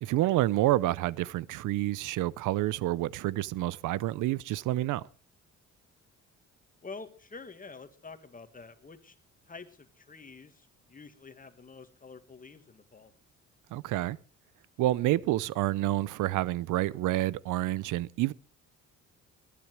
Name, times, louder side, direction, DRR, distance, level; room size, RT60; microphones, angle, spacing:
voice 1, 0.0-5.1 13.7-14.2 14.8-18.3, right 15 dB, 85° right, 0.6 m, -28 dB
voice 2, 6.8-9.2 9.5-13.1, left 4 dB, 30° left, 2.0 m, -48 dB
19.5 x 10.5 x 4.7 m
cardioid pair, 90°, 30 cm